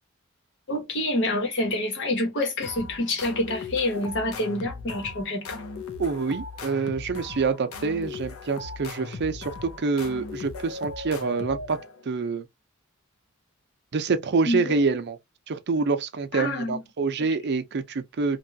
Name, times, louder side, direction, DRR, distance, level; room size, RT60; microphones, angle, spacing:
voice 1, 0.7-5.6 14.4-14.8 16.3-16.8, left 1 dB, 60° left, 1.1 m, -27 dB
sound 1, 2.6-12.1, left 3 dB, 85° left, 0.6 m, -38 dB
voice 2, 6.0-11.8 12.1-12.5 13.9-15.2 15.5-18.4, right 4 dB, 55° right, 0.5 m, -26 dB
2.9 x 2.3 x 2.7 m
head